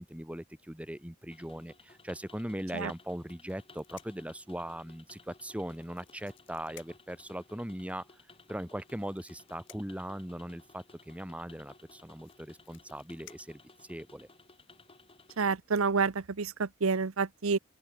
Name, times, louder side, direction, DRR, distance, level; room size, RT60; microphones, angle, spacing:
voice 1, 0.0-8.1 8.5-14.3, right 1 dB, 5° right, 1.6 m, -40 dB
sound 1, 1.3-15.4, left 3 dB, 25° left, 5.5 m, -58 dB
sound 2, 3.2-4.3 5.6-7.2 8.6-10.1 11.5-11.6 11.9-14.3 15.1-15.4 15.7-15.9, left 13 dB, 65° left, 4.1 m, -57 dB
voice 2, 15.4-17.6, right 5 dB, 85° right, 0.8 m, -29 dB
open air
head